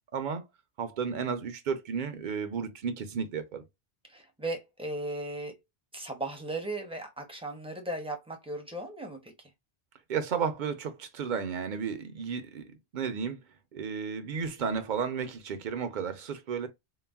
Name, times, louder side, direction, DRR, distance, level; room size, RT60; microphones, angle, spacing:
voice 1, 0.1-0.4 0.8-3.6 10.1-12.7 12.9-13.4 13.7-16.7, right 6 dB, 55° right, 0.6 m, -33 dB
voice 2, 4.1-5.5 5.9-9.3, right 2 dB, 5° right, 0.5 m, -37 dB
3.8 x 2.0 x 2.2 m
omnidirectional pair, 1.1 m